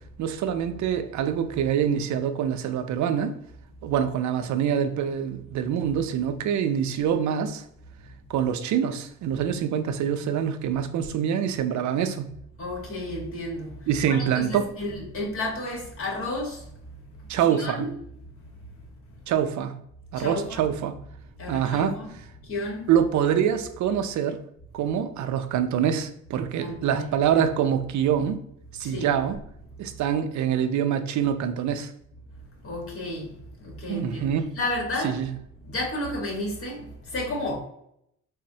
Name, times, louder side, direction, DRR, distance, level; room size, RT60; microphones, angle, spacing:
voice 1, 0.2-3.4 3.8-7.6 8.3-12.3 13.9-14.7 17.3-17.9 19.3-19.7 20.1-21.0 21.5-22.0 22.9-24.4 24.7-28.4 28.7-29.4 29.8-31.9 33.9-34.6 35.0-35.3, right 8 dB, 70° right, 0.4 m, -25 dB
voice 2, 12.6-16.7 17.2-17.3 17.6-18.0 20.1-20.6 21.4-22.1 22.4-22.9 26.6-27.0 28.8-29.1 32.6-34.3 34.5-35.2 35.6-37.6, left 1 dB, 45° left, 1.2 m, -32 dB
3.9 x 2.1 x 2.6 m
cardioid pair, 90°, 30 cm